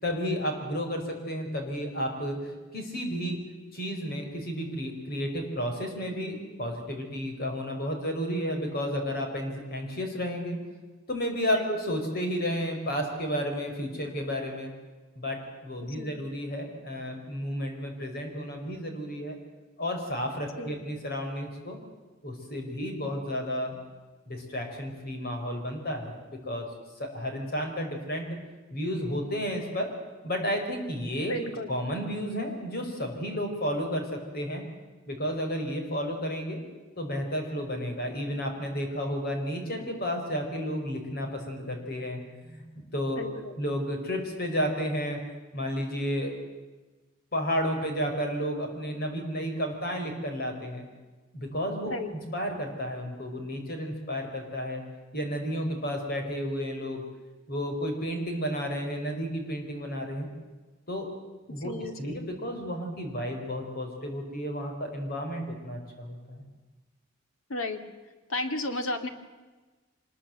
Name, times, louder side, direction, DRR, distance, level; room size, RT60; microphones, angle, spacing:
voice 1, 0.0-3.4 3.7-10.6 11.1-14.7 15.1-15.4 15.6-19.4 19.8-21.8 22.2-23.8 24.3-26.7 27.0-28.3 28.7-29.9 30.2-31.3 31.7-34.6 35.1-36.6 37.0-42.6 42.9-43.2 43.6-45.2 45.5-46.3 47.3-50.8 51.3-52.0 52.3-54.8 55.1-57.0 57.5-60.3 60.9-61.1 61.5-66.4, equal, 50° left, 4 dB, 5.0 m, -32 dB
voice 2, 31.3-31.7 43.2-43.6 51.9-52.1 61.6-62.2 67.5-67.8 68.3-69.1, left 1 dB, 80° left, 8 dB, 2.3 m, -33 dB
25.0 x 21.0 x 7.9 m, 1.2 s
head